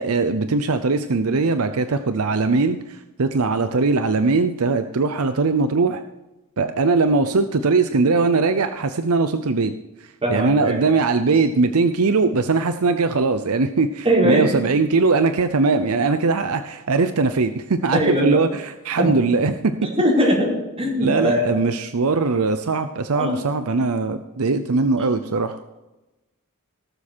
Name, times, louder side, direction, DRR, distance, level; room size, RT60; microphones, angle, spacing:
voice 1, 0.0-6.0 6.6-9.7 10.3-19.9 21.0-25.6, right 4 dB, 75° right, 9 dB, 0.7 m, -20 dB
voice 2, 10.2-10.8 14.0-14.6 17.9-18.4 19.0-19.2 19.8-21.6 23.1-23.4, equal, 25° right, -4 dB, 4.6 m, -21 dB
17.5 x 7.3 x 4.4 m, 1.0 s
head